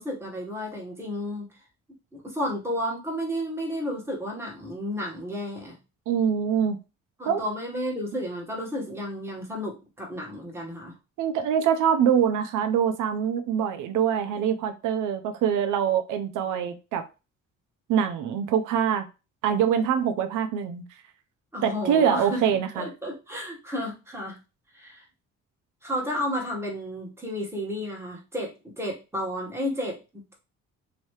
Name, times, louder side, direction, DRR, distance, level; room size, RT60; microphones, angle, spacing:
voice 1, 0.0-1.5 2.1-5.8 7.2-10.9 21.5-22.4 22.7-24.4 24.7-25.0 25.8-28.5 28.8-30.3, equal, 10° right, 1.5 m, -32 dB
voice 2, 6.1-6.8 7.3-7.4 11.2-17.0 17.9-19.1 19.4-20.8 21.6-22.9, right 8 dB, 85° right, 0.5 m, -24 dB
3.0 x 2.8 x 3.2 m
cardioid pair, 90°, 30 cm